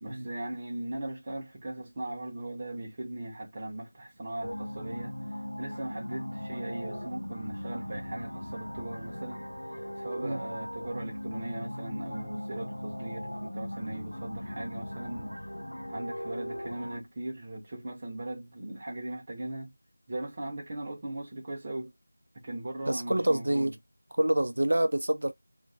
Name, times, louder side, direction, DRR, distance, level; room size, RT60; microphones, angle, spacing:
voice 1, 0.0-5.2 5.6-9.4 10.0-15.3 15.9-19.7 20.1-21.9 22.3-23.7, right 1 dB, 25° right, 0.8 m, -38 dB
sound 1, 4.4-17.0, equal, 90° left, 0.6 m, -38 dB
voice 2, 22.9-23.7 24.2-25.3, right 1 dB, 60° right, 0.5 m, -26 dB
2.5 x 2.1 x 2.6 m
figure-of-eight pair, 170°, 0 cm